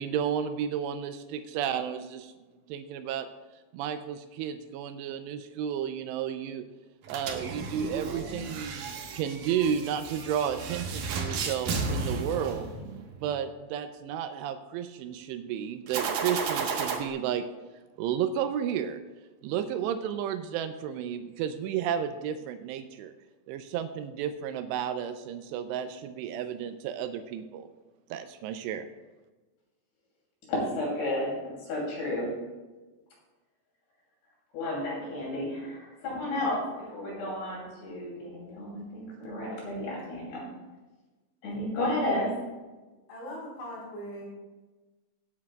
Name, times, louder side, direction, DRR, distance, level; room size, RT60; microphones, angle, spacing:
voice 1, 0.0-2.3 2.7-3.3 3.7-6.7 7.1-12.7 13.2-17.5 18.0-19.0 19.4-23.1 23.5-27.7 28.1-28.9, right 8 dB, 85° right, 8 dB, 2.5 m, -32 dB
sound 1, 7.0-13.2 15.9-17.0, right 4 dB, 70° right, 2.1 m, -33 dB
voice 2, 30.5-32.3 34.5-40.4 41.4-42.4, left 1 dB, 60° left, -3 dB, 4.5 m, -32 dB
voice 3, 43.1-44.3, equal, 80° left, -5 dB, 6.5 m, -40 dB
18.5 x 9.7 x 2.3 m, 1.2 s
omnidirectional pair, 5.5 m